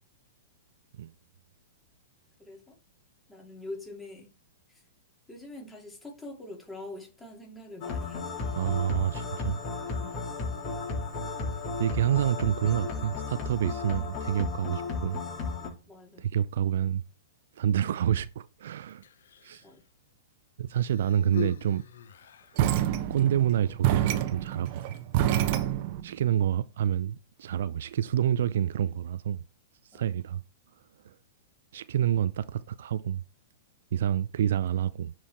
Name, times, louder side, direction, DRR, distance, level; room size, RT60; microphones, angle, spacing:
voice 1, 2.4-2.8 3.3-4.3 5.3-8.3 9.9-10.3 15.9-16.3 19.6-19.8 29.9-30.0, left 2 dB, 10° left, 2.8 m, -44 dB
sound 1, 7.8-15.7, left 4 dB, 35° left, 3.8 m, -34 dB
voice 2, 8.5-9.6 11.8-15.2 16.2-17.0 17.6-19.0 19.4-19.6 20.6-21.9 23.1-25.0 26.0-29.4 29.9-30.4 31.0-31.2 31.7-33.2 33.9-35.1, right 10 dB, 65° right, 0.4 m, -28 dB
Human voice, 18.9-19.8 20.7-22.6 23.5-23.7, left 8 dB, 65° left, 0.8 m, -41 dB
sound 2, 22.6-26.1, right 12 dB, 50° right, 1.0 m, -27 dB
9.8 x 4.8 x 4.3 m
figure-of-eight pair, 110°, 0 cm